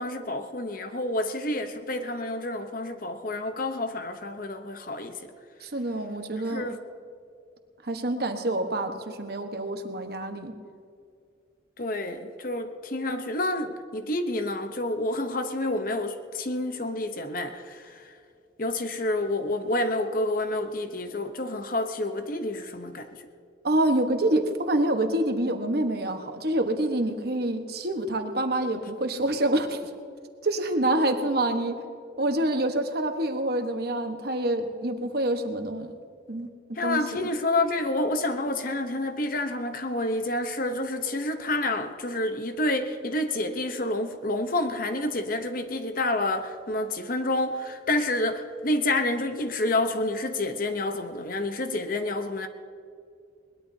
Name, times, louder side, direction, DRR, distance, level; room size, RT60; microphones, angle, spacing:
voice 1, 0.0-5.3 6.5-6.8 11.8-18.1 18.6-23.1 36.8-52.5, left 2 dB, 50° left, 7 dB, 0.8 m, -29 dB
voice 2, 5.6-6.7 7.8-10.5 23.6-29.9 30.4-31.8 32.2-36.0 36.3-36.5 36.8-37.3, right 1 dB, 55° right, 6 dB, 1.2 m, -27 dB
21.5 x 20.0 x 2.8 m, 2.3 s
head